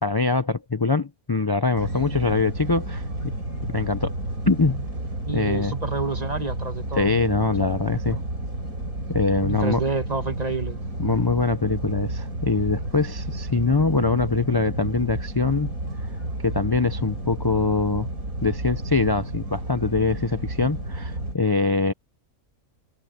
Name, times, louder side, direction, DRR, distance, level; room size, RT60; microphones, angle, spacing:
voice 1, 0.0-3.3 3.7-4.1 4.5-4.8 5.3-5.7 7.0-8.2 9.1-9.8 11.0-15.7 16.4-18.1 18.4-21.9, left 3 dB, 40° left, 0.3 m, -23 dB
sound 1, 1.7-21.4, right 1 dB, 70° right, 6.7 m, -31 dB
voice 2, 5.3-7.1 7.6-7.7 8.1-8.2 9.4-10.8, right 4 dB, 25° right, 1.6 m, -29 dB
omnidirectional pair, 1.6 m